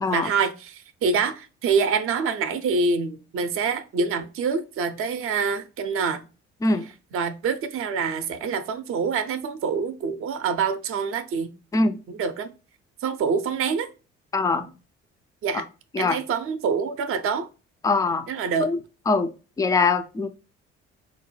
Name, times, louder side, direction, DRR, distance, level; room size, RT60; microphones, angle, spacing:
voice 1, 0.1-6.2 7.1-11.5 12.1-12.5 13.0-13.9 15.4-15.7 16.0-17.5 18.3-18.7, right 5 dB, 35° right, 0.6 m, -26 dB
voice 2, 14.3-14.7 15.5-15.6 15.9-16.2 17.8-18.3 18.6-18.8 19.1-19.3 19.6-20.3, left 3 dB, 10° left, 0.3 m, -22 dB
4.9 x 2.1 x 3.0 m
figure-of-eight pair, 50°, 37 cm